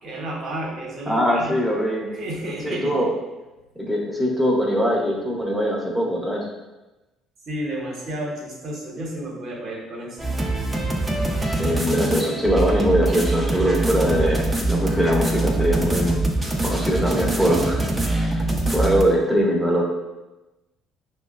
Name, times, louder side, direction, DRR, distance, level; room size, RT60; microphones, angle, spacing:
voice 1, 0.0-1.5 2.1-2.9 7.5-10.3, right 1 dB, 55° right, -2 dB, 1.1 m, -31 dB
voice 2, 1.1-2.1 2.6-3.1 3.8-6.5 11.4-16.1 16.6-17.8 18.1-19.8, equal, 5° left, -2 dB, 1.1 m, -22 dB
sound 1, 10.2-19.0, right 2 dB, 15° right, 0.8 m, -23 dB
5.9 x 2.1 x 2.4 m, 1.1 s
hypercardioid pair, 60°, 0 cm